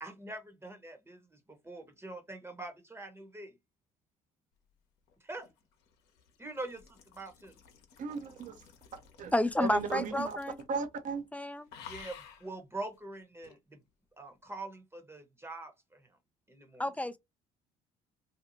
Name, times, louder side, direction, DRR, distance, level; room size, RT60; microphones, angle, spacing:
voice 1, 0.0-3.6 5.2-5.5 6.4-7.5 11.9-13.8 14.2-16.2 16.5-16.9, right 2 dB, 15° right, 0.9 m, -44 dB
sound 1, 5.1-10.8 11.1-11.3 11.7-12.5 13.4-13.6, left 7 dB, 70° left, 0.8 m, -53 dB
voice 2, 8.0-8.6 9.2-9.3 9.6-10.4 10.7-11.3, right 5 dB, 50° right, 0.8 m, -35 dB
voice 3, 9.3-10.6 11.3-11.7 16.8-17.2, left 1 dB, 10° left, 0.3 m, -30 dB
2.6 x 2.3 x 2.9 m
hypercardioid pair, 65°, 17 cm